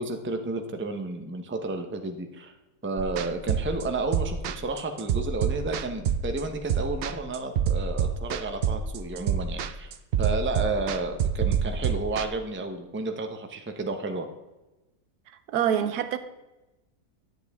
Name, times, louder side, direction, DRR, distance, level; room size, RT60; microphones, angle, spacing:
voice 1, 0.0-2.5 2.8-9.9 10.2-14.3, right 3 dB, 15° right, 0.5 m, -31 dB
sound 1, 3.0-12.2, right 7 dB, 70° right, 0.5 m, -27 dB
voice 2, 15.5-16.2, right 9 dB, 90° right, 1.2 m, -25 dB
10.5 x 7.8 x 3.5 m
omnidirectional pair, 1.6 m